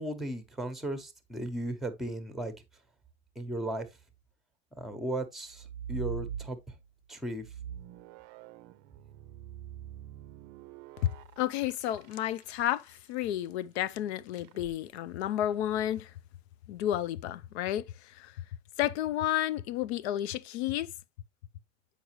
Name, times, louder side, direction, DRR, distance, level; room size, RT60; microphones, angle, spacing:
voice 1, 0.0-2.5 3.4-3.9 4.8-6.6 7.1-7.4, right 1 dB, ahead, 1.0 m, -36 dB
sound 1, 5.5-6.9 7.4-12.9 14.4-14.7, right 9 dB, 50° right, 0.5 m, -43 dB
voice 2, 11.4-16.1 16.7-17.8 18.1-18.3 18.8-20.9, left 12 dB, 90° left, 0.6 m, -31 dB
7.9 x 5.1 x 3.0 m
supercardioid pair, 130°, 32 cm